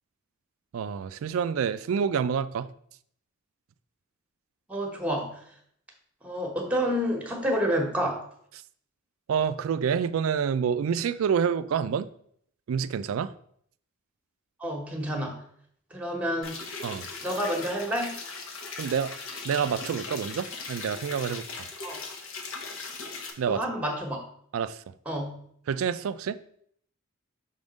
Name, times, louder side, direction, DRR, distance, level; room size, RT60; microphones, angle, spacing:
voice 1, 0.7-2.7 9.3-12.1 12.7-13.3 16.8-17.1 18.8-19.1 19.4-21.5 23.4-23.6 24.5-24.8 25.7-26.4, right 7 dB, 80° right, 0.3 m, -27 dB
voice 2, 4.7-5.4 6.2-8.2 14.6-15.3 15.9-16.6 17.2-18.2 21.8-22.0 23.5-24.2 25.1-25.4, equal, 5° right, 1.1 m, -29 dB
sound 1, 16.4-23.3, left 4 dB, 80° left, 1.0 m, -39 dB
5.7 x 3.6 x 5.2 m
head